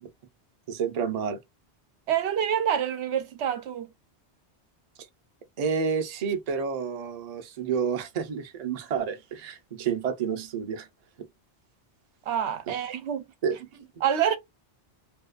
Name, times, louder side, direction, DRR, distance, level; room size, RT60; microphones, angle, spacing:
voice 1, 0.7-1.4 5.6-10.9 11.2-11.3 12.7-12.8 13.4-13.9, right 6 dB, 45° right, 0.6 m, -30 dB
voice 2, 2.1-3.9 12.3-13.2 14.0-14.4, right 9 dB, 80° right, 0.9 m, -26 dB
2.7 x 2.3 x 2.3 m
omnidirectional pair, 1.1 m